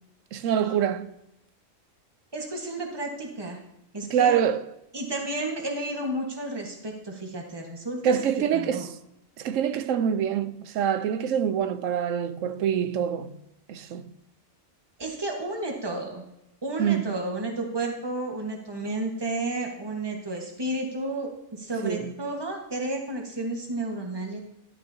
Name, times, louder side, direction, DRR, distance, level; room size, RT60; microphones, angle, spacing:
voice 1, 0.3-1.1 4.1-4.7 8.0-9.0 9.4-13.4 13.7-14.1 16.8-17.2 21.8-22.1, right 8 dB, 75° right, 0.9 m, -25 dB
voice 2, 2.3-3.6 3.9-4.4 4.9-8.1 8.5-8.9 15.0-16.2 16.6-24.4, right 2 dB, 20° right, 1.4 m, -32 dB
11.5 x 10.0 x 2.8 m
omnidirectional pair, 1.4 m